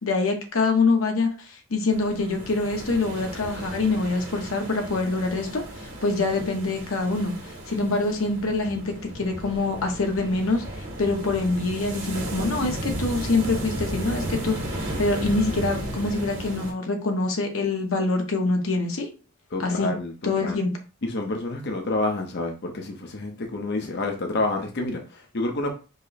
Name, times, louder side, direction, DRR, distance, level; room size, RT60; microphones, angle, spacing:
voice 1, 0.0-5.6 6.0-7.3 7.7-10.6 11.0-14.5 15.0-19.1 19.6-19.9 20.2-20.7, left 3 dB, 85° left, 1.0 m, -25 dB
sound 1, 1.9-16.7, right 1 dB, 65° right, 1.6 m, -34 dB
voice 2, 19.5-20.6 21.0-25.7, left 2 dB, 55° left, 0.7 m, -28 dB
5.2 x 2.1 x 4.1 m
head